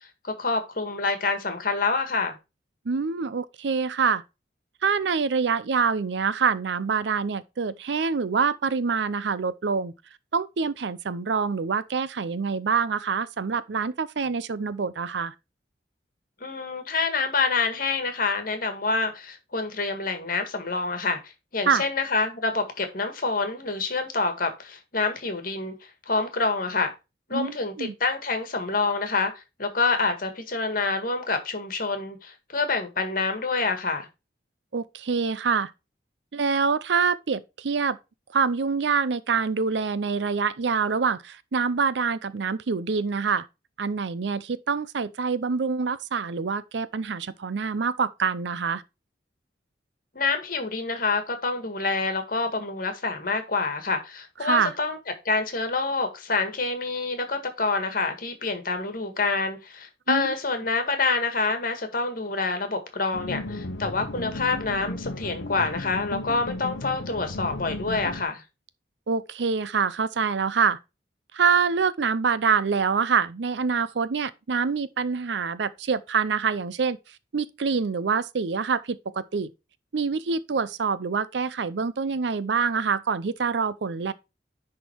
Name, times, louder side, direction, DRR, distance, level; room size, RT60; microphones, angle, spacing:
voice 1, 0.2-2.3 16.4-21.2 21.5-25.7 26.1-26.9 27.3-34.1 50.1-55.0 55.2-68.4, left 3 dB, 50° left, 1.7 m, -27 dB
voice 2, 2.9-4.2 4.8-9.9 10.3-15.3 21.7-21.8 27.3-27.9 34.7-35.7 36.3-38.0 38.3-43.5 43.8-48.8 54.4-54.7 60.1-60.3 69.1-70.8 71.3-77.0 77.3-79.5 79.9-84.1, right 5 dB, 75° right, 0.5 m, -26 dB
sound 1, 63.1-68.2, left 2 dB, 80° left, 0.8 m, -35 dB
10.0 x 3.7 x 4.5 m
head